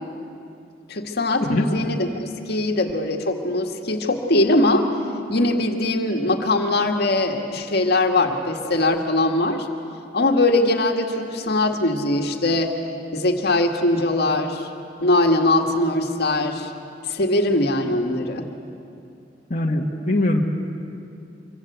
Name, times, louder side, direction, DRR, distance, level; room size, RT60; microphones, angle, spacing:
voice 1, 0.9-2.1 2.5-4.9 5.3-9.7 10.1-12.7 13.1-14.7 15.0-16.7 17.1-18.5, left 2 dB, 60° left, 3 dB, 2.0 m, -21 dB
voice 2, 1.4-1.9 19.5-20.4, left 1 dB, 40° left, -2 dB, 1.7 m, -22 dB
26.0 x 24.0 x 8.2 m, 2.5 s
head